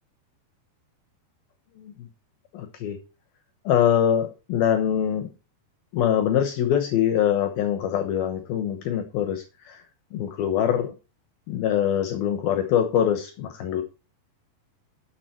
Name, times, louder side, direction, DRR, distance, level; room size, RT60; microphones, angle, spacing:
voice 1, 1.8-2.1 2.5-3.0 3.7-5.3 5.9-9.8 10.1-10.9 11.5-13.8, left 9 dB, 70° left, 8 dB, 2.8 m, -24 dB
12.5 x 7.0 x 4.4 m, 0.30 s
omnidirectional pair, 4.7 m